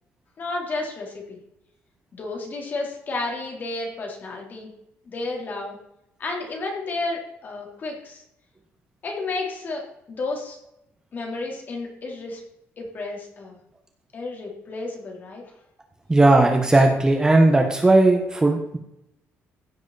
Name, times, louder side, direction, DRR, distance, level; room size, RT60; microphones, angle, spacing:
voice 1, 0.4-1.4 2.1-4.7 5.1-5.8 6.2-8.2 9.0-10.6 11.1-12.4 12.8-13.6 14.1-15.4, left 3 dB, 40° left, 0 dB, 3.6 m, -32 dB
voice 2, 16.1-18.8, right 2 dB, 15° right, 3 dB, 1.3 m, -17 dB
15.5 x 7.9 x 4.2 m, 0.82 s
cardioid pair, 130°, 5 cm